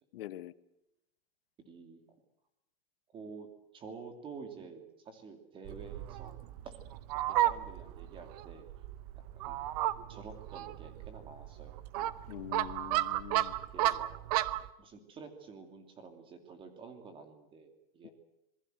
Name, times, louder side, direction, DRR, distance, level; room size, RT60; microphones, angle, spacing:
voice 1, 0.1-0.5 12.3-13.5 18.0-18.1, left 15 dB, 65° left, 14 dB, 1.3 m, -44 dB
voice 2, 1.7-2.0 3.1-3.5 3.7-6.4 6.6-6.8 7.3-8.7 9.1-9.6 10.1-11.8 13.7-14.1 14.8-18.1, right 5 dB, 15° right, 7 dB, 2.8 m, -49 dB
Fowl, 5.6-14.7, right 14 dB, 40° right, 0.9 m, -34 dB
27.0 x 20.5 x 7.9 m, 0.87 s
supercardioid pair, 180°, 31 cm